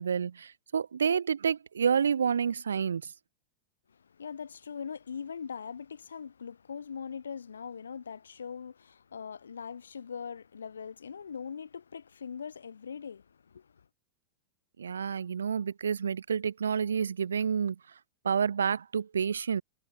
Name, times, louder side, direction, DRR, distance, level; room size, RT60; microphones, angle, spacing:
voice 1, 0.0-3.1 14.8-17.8 18.2-19.6, right 7 dB, 70° right, 2.2 m, -29 dB
voice 2, 3.9-13.8, left 6 dB, 70° left, 4.6 m, -41 dB
figure-of-eight pair, 90°, 0 cm